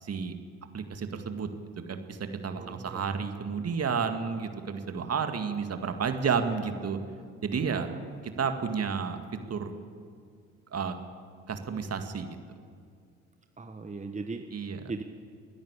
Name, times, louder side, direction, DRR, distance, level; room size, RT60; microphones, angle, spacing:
voice 1, 0.0-0.3 0.7-1.5 1.9-2.2 2.4-7.0 7.4-7.9 8.4-9.2 9.5-9.7 10.7-10.9 11.5-12.4 14.5-14.8, right 6 dB, 45° right, 7 dB, 2.2 m, -31 dB
voice 2, 2.5-3.0 7.7-8.2 13.6-15.0, right 3 dB, 20° right, 6 dB, 1.3 m, -39 dB
29.0 x 10.5 x 8.4 m, 2.2 s
hypercardioid pair, 55°, 35 cm